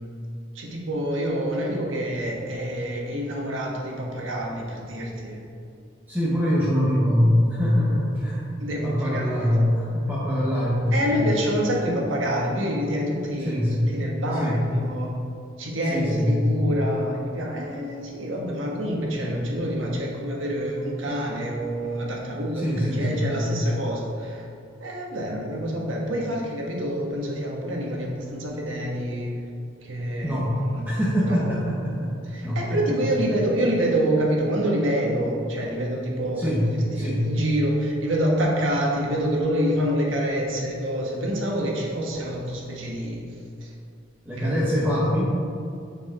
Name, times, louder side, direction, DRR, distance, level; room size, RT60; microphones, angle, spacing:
voice 1, 0.5-5.4 8.6-9.6 10.9-15.1 15.6-24.5 24.8-29.3 29.8-30.9 31.2-31.5 32.2-43.2 43.6-43.7 44.4-44.9, equal, 85° right, -2 dB, 1.4 m, -27 dB
voice 2, 6.1-8.4 8.8-11.2 13.4-13.9 14.4-14.6 15.9-16.7 22.6-23.5 30.2-30.6 30.8-32.8 36.4-36.7 36.9-37.3 44.3-45.3, equal, 10° right, -8 dB, 1.0 m, -23 dB
7.0 x 4.6 x 5.0 m, 2.4 s
head